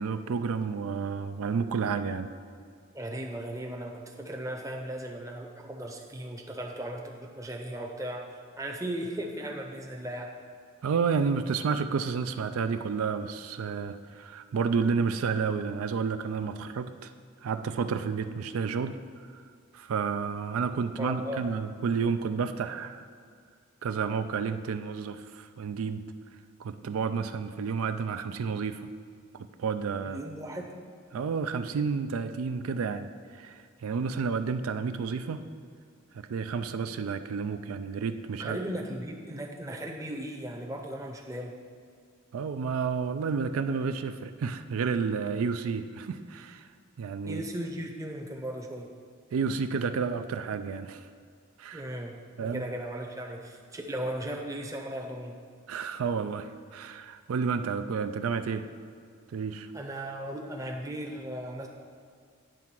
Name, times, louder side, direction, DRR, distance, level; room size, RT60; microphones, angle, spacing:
voice 1, 0.0-2.3 10.8-17.1 17.4-19.4 19.7-23.0 23.8-26.1 26.6-28.9 29.4-30.2 31.1-35.4 36.1-38.6 42.3-46.7 47.0-47.4 49.3-51.1 51.6-51.9 52.4-52.6 55.7-58.7 59.3-59.7, right 5 dB, 85° right, 9 dB, 0.4 m, -31 dB
voice 2, 2.9-8.2 8.6-10.3 21.0-21.5 30.0-30.7 38.4-41.5 47.2-48.9 51.7-52.1 52.4-55.4 59.7-61.7, right 1 dB, 15° right, 1 dB, 0.6 m, -37 dB
9.1 x 3.6 x 5.9 m, 2.1 s
head